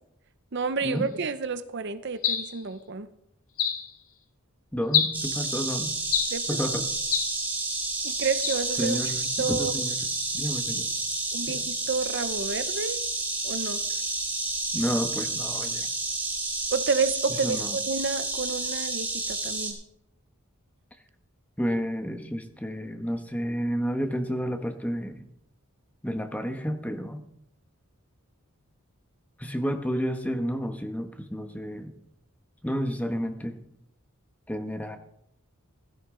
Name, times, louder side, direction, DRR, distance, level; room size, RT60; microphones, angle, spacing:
voice 1, 0.5-3.1 6.3-6.4 8.0-9.0 9.4-9.7 11.3-13.0 13.4-13.8 16.7-19.8, right 4 dB, 55° right, 12 dB, 0.7 m, -30 dB
sound 1, 2.2-2.6 3.6-3.9 4.9-5.3 6.1-6.4 7.1-7.4 8.4-8.7, left 8 dB, 80° left, 1.8 m, -26 dB
voice 2, 4.7-5.9 6.5-6.9 8.8-10.1 10.3-10.9 11.5-11.6 14.7-15.9 17.4-17.8 21.6-25.2 26.0-27.2 29.4-31.9 32.6-33.5 34.5-35.0, equal, 5° left, 6 dB, 1.1 m, -30 dB
Insect, 5.1-19.7, right 3 dB, 10° right, 3.0 m, -30 dB
16.0 x 13.5 x 3.8 m, 0.78 s
head